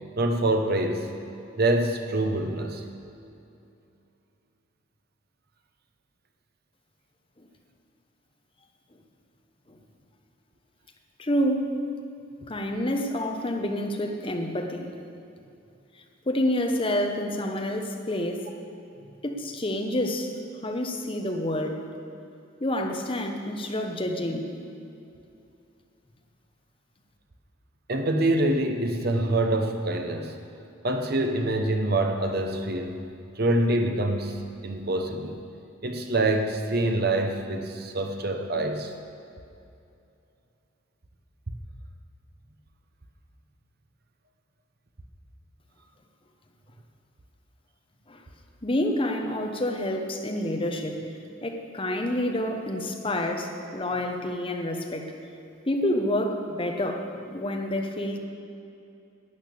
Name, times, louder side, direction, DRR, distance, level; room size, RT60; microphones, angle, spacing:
voice 1, 0.2-1.1 1.6-2.8 27.9-30.3 30.8-33.0 33.4-34.4 34.6-35.4 35.8-38.9, right 1 dB, 50° right, 5 dB, 1.0 m, -25 dB
voice 2, 11.2-11.7 12.5-14.9 16.3-18.4 19.2-20.3 20.6-21.8 22.6-24.5 48.1-48.2 48.6-51.0 51.4-55.1 55.7-58.2, left 1 dB, 25° left, 3 dB, 1.0 m, -28 dB
12.0 x 9.0 x 6.8 m, 2.7 s
head